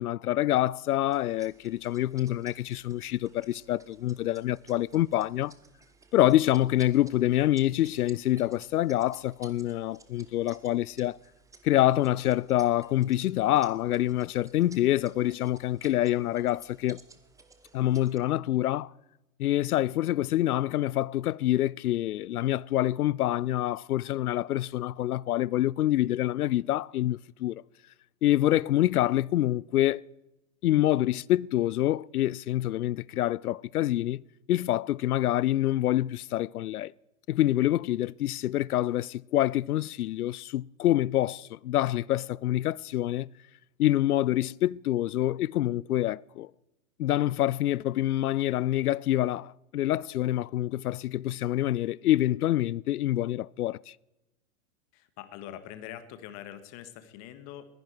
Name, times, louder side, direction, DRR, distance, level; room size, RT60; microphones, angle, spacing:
voice 1, 0.0-5.5 6.1-11.2 11.6-17.0 17.7-18.9 19.4-27.6 28.2-30.0 30.6-34.2 34.5-36.9 37.3-43.3 43.8-46.5 47.0-53.9, left 14 dB, 75° left, 0.5 m, -26 dB
sound 1, 1.1-18.2, right 4 dB, 5° right, 0.9 m, -57 dB
voice 2, 54.9-57.7, left 11 dB, 35° left, 1.6 m, -44 dB
21.0 x 10.5 x 4.5 m
hypercardioid pair, 110°, 44 cm